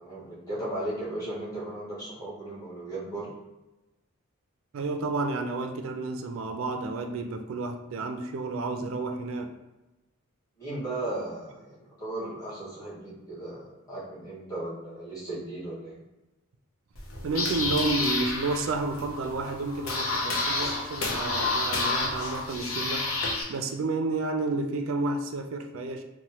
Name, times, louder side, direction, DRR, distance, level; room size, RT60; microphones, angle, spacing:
voice 1, 0.0-3.3 10.6-16.0, right 1 dB, 15° left, -11 dB, 1.4 m, -36 dB
voice 2, 4.7-9.5 17.2-23.1 23.5-26.0, right 3 dB, 70° right, 6 dB, 0.3 m, -31 dB
sound 1, 16.9-23.4, left 2 dB, 80° left, 0.6 m, -30 dB
2.9 x 2.1 x 2.8 m, 1.0 s
head